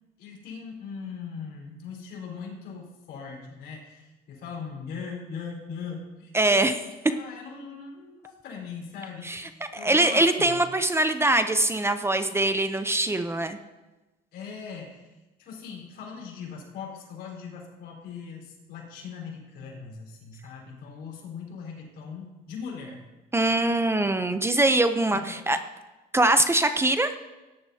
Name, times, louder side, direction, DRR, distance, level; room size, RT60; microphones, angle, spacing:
voice 1, 0.2-10.6 14.3-15.1 15.4-23.0 25.1-25.5, left 5 dB, 75° left, -2 dB, 4.3 m, -40 dB
voice 2, 6.3-6.8 9.2-13.6 23.3-25.6 26.1-27.1, right 2 dB, 15° right, 9 dB, 0.6 m, -23 dB
17.5 x 11.5 x 2.8 m, 1.1 s
cardioid pair, 110°, 17 cm